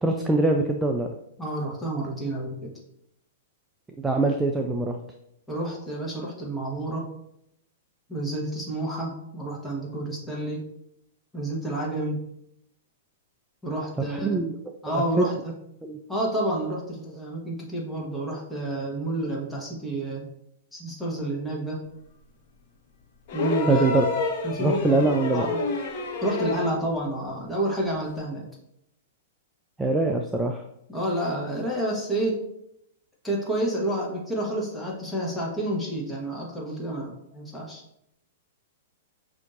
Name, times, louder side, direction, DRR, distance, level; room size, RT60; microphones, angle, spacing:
voice 1, 0.0-1.1 4.0-5.0 14.1-14.5 14.9-15.3 15.8-16.0 23.7-24.1 24.6-25.5 29.8-30.6, right 2 dB, 10° right, 3 dB, 0.3 m, -23 dB
voice 2, 1.4-2.7 5.5-7.1 8.1-10.7 11.3-12.2 13.6-14.4 14.8-15.5 16.1-20.3 20.7-21.8 23.3-23.8 24.4-25.6 26.2-28.4 30.9-32.4 33.2-37.8, right 1 dB, 5° left, -3 dB, 1.2 m, -29 dB
sound 1, 23.3-26.8 28.2-28.3, left 3 dB, 50° left, 0.9 m, -29 dB
5.7 x 2.7 x 2.5 m, 0.78 s
hypercardioid pair, 115°, 0 cm